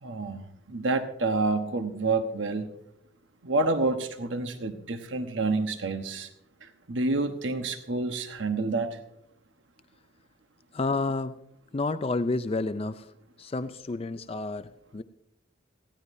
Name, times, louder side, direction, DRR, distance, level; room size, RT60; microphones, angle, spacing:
voice 1, 0.0-2.7 3.4-6.3 6.6-9.0, right 3 dB, 85° right, 7 dB, 1.1 m, -28 dB
voice 2, 10.7-11.4 11.7-13.1 13.4-15.0, left 3 dB, 30° left, 11 dB, 0.4 m, -30 dB
19.0 x 15.5 x 2.7 m, 0.79 s
head